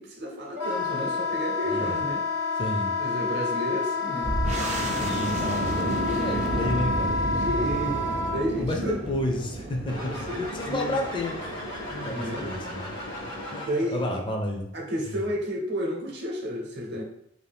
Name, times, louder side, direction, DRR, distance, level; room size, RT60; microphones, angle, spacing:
voice 1, 0.0-2.2 3.0-4.6 7.2-9.0 10.0-11.0 11.9-12.5 13.5-14.2 14.7-17.0, equal, 60° right, 0 dB, 0.7 m, -32 dB
Wind instrument woodwind instrument, 0.5-8.4, left 4 dB, 65° left, 1.3 m, -29 dB
voice 2, 1.6-2.0 2.6-3.0 5.0-7.2 8.6-10.1 10.4-11.5 12.0-12.9 13.5-14.7 15.1-15.2, left 1 dB, 25° left, 1 dB, 0.4 m, -31 dB
sound 1, 4.2-13.4, right 2 dB, 35° right, 0.3 m, -32 dB
sound 2, 9.9-14.0, left 1 dB, 80° left, 1.1 m, -37 dB
2.6 x 2.4 x 3.3 m, 0.73 s
head